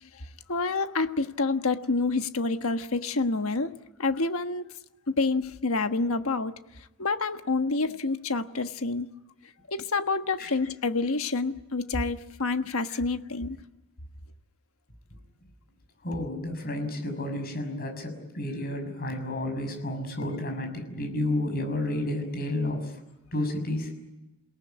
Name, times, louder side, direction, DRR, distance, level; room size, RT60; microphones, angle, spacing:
voice 1, 0.0-3.7 4.0-4.6 5.1-6.5 7.0-9.1 9.7-13.6, left 3 dB, 70° left, 8 dB, 1.4 m, -28 dB
voice 2, 16.0-23.0 23.3-24.0, left 1 dB, 45° left, 5 dB, 6.5 m, -31 dB
28.5 x 18.5 x 9.3 m, 0.96 s
head